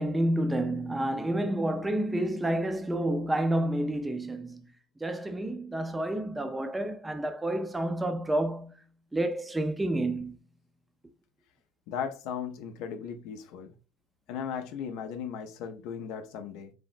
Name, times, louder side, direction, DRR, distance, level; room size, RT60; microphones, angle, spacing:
voice 1, 0.0-4.6 5.0-8.8 9.1-10.4, right 1 dB, 10° right, 0.3 m, -29 dB
voice 2, 11.9-13.7 14.3-16.7, left 7 dB, 75° left, 0.4 m, -37 dB
3.2 x 2.0 x 2.4 m
supercardioid pair, 100°, 0 cm